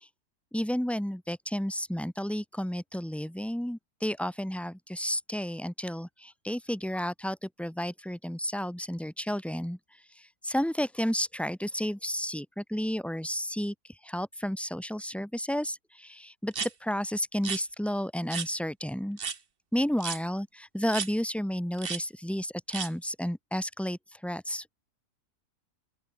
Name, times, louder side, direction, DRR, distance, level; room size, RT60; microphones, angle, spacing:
voice 1, 0.5-9.8 10.2-13.7 14.0-19.2 19.7-24.8, equal, ahead, 1.2 m, -32 dB
sound 1, 16.5-16.7 17.4-17.6 18.3-18.5 19.2-19.4 20.0-20.2 20.9-21.1 21.8-22.0 22.7-22.9, right 6 dB, 35° right, 1.3 m, -33 dB
open air
omnidirectional pair, 1.8 m